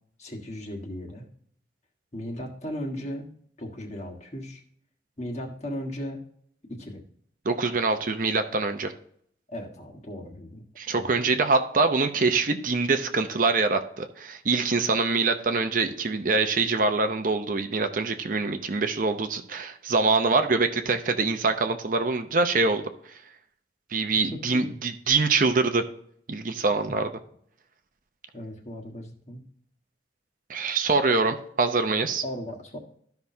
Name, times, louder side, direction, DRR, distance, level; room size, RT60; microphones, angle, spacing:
voice 1, 0.2-1.3 2.1-3.3 3.6-4.6 5.2-6.2 6.7-7.0 9.5-10.6 10.9-11.1 24.3-24.7 28.3-29.4 32.2-32.8, equal, 40° left, 0 dB, 1.5 m, -36 dB
voice 2, 7.4-8.9 10.8-22.8 23.1-23.2 23.9-25.8 26.3-27.1 30.5-32.2, right 3 dB, 50° right, 7 dB, 0.7 m, -24 dB
13.0 x 5.8 x 2.7 m, 0.65 s
head